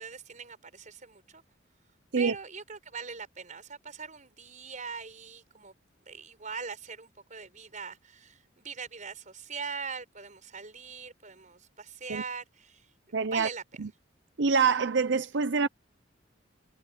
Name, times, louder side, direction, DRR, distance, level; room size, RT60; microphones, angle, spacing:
voice 1, 0.0-1.4 2.2-5.7 6.1-12.9 13.3-13.6, right 5 dB, 40° right, 5.1 m, -41 dB
voice 2, 13.1-13.5 13.8-13.9 14.4-15.7, right 5 dB, 65° right, 0.6 m, -25 dB
head